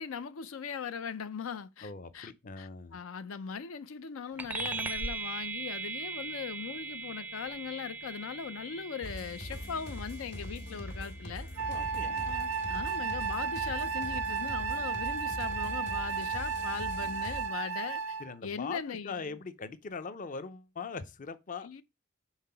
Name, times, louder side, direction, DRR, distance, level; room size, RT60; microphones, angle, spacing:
voice 1, 0.0-11.5 12.3-18.2 18.4-19.4 21.6-21.8, left 6 dB, 90° left, 0.5 m, -40 dB
voice 2, 1.8-3.0 11.7-12.3 18.2-21.7, left 4 dB, 40° left, 0.5 m, -41 dB
sound 1, 4.4-14.2, right 4 dB, 10° right, 0.4 m, -41 dB
sound 2, 9.0-17.5, equal, 60° left, 1.7 m, -42 dB
Wind instrument woodwind instrument, 11.6-18.3, right 5 dB, 90° right, 0.6 m, -33 dB
5.7 x 3.6 x 5.6 m
head